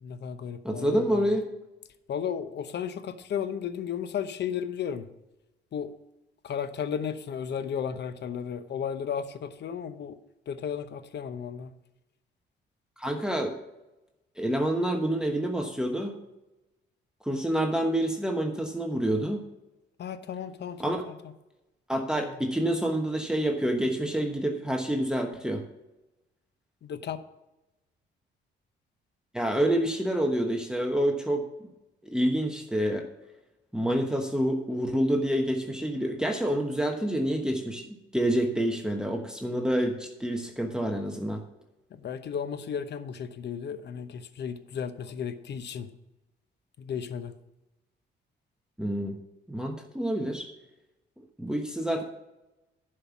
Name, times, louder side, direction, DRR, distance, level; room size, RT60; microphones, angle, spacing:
voice 1, 0.0-1.3 2.1-5.1 5.7-5.9 6.4-10.2 10.5-11.7 20.0-21.1 21.9-22.3 26.8-27.2 42.0-45.9 46.8-47.3, left 8 dB, 60° left, 12 dB, 0.9 m, -34 dB
voice 2, 0.6-1.4 13.0-13.6 14.4-16.2 17.2-19.4 20.8-21.1 21.9-25.6 29.3-31.7 32.0-33.1 33.7-37.8 38.1-41.4 48.8-49.2 49.5-50.5 51.2-52.0, right 1 dB, 5° right, 3 dB, 1.2 m, -27 dB
11.0 x 5.6 x 7.1 m, 0.97 s
cardioid pair, 90°, 20 cm